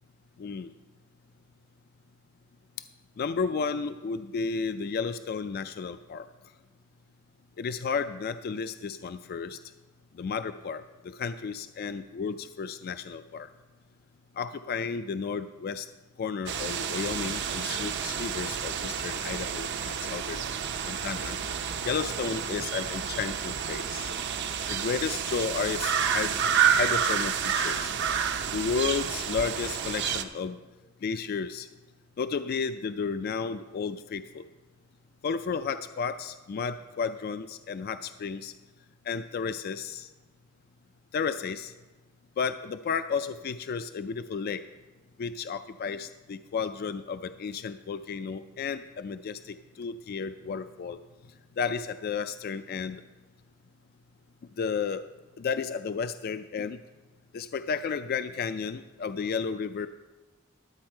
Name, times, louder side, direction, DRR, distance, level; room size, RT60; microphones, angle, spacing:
voice 1, 0.4-0.7 3.2-6.3 7.6-9.6 10.1-13.5 14.4-15.9 16.2-20.4 20.8-21.4 21.8-24.1 24.7-26.4 26.8-27.9 28.5-30.6 31.0-31.7 32.2-34.5 35.2-38.5 39.1-40.1 41.1-41.7 42.4-44.6 45.2-51.0 51.6-53.0 54.6-55.0 55.4-56.8 57.3-59.9, left 5 dB, 50° left, 11 dB, 0.3 m, -32 dB
sound 1, 16.5-30.2, right 7 dB, 60° right, 0.6 m, -29 dB
11.5 x 8.5 x 4.4 m, 1.2 s
head